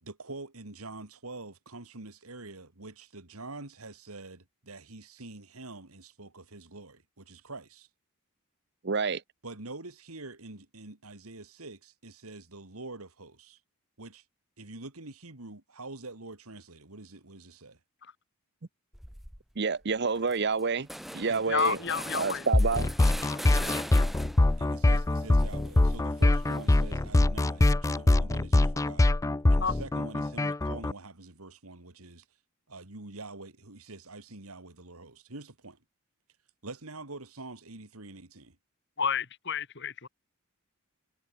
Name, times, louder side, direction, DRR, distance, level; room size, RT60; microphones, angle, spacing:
voice 1, 0.0-7.9 9.4-13.6 14.0-14.2 14.6-17.8 21.3-21.9 23.9-24.1 24.6-29.2 29.5-32.2 32.7-35.8 36.6-38.6, right 2 dB, 80° right, 2.8 m, -45 dB
voice 2, 8.8-9.2 19.6-20.9 21.1-21.8 22.1-22.9, right 4 dB, 50° right, 0.8 m, -28 dB
sound 1, 18.9-19.4 19.8-19.9 20.2-24.6 24.9-27.1, equal, ahead, 1.5 m, -42 dB
voice 3, 21.5-22.5 23.3-23.8 29.6-29.8 39.0-40.1, left 6 dB, 55° left, 2.6 m, -31 dB
sound 2, 22.5-30.9, left 2 dB, 15° left, 0.3 m, -23 dB
head